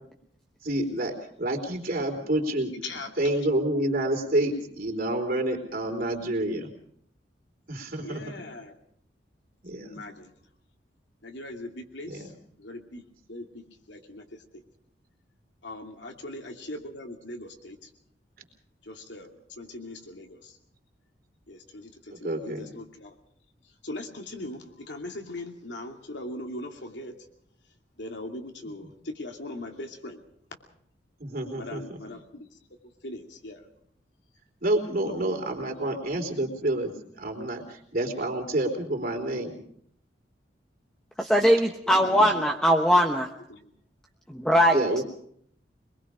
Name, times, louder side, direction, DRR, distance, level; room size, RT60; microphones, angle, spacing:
voice 1, 0.6-2.7 3.2-6.7 7.7-8.3 9.6-10.0 12.1-12.3 22.1-22.7 31.2-32.0 34.6-39.6 41.9-42.3 44.7-45.0, right 1 dB, 50° right, 2 dB, 3.8 m, -29 dB
voice 2, 2.8-3.4 8.0-8.7 9.8-10.3 11.2-12.3 12.6-13.0 13.3-14.6 15.6-16.3 16.6-17.9 18.9-20.6 21.5-23.1 23.8-27.2 28.0-30.2 31.6-32.5 33.0-33.6 35.0-35.3 41.3-41.5 41.9-42.9 43.5-43.6 44.9-45.0, left 1 dB, 80° left, 3 dB, 2.7 m, -40 dB
voice 3, 41.2-43.3 44.3-45.0, equal, 5° left, 1 dB, 1.1 m, -21 dB
24.0 x 21.5 x 5.1 m, 0.67 s
head